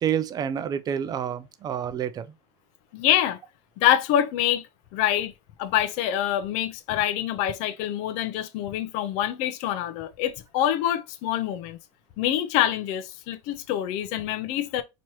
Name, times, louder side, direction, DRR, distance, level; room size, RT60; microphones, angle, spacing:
voice 1, 0.0-2.3, right 9 dB, 30° right, 0.5 m, -28 dB
voice 2, 2.9-3.4 3.8-4.7 4.9-5.3 5.6-11.8 12.2-14.8, left 11 dB, 60° left, 0.7 m, -25 dB
4.4 x 3.0 x 3.0 m
supercardioid pair, 120°, 14 cm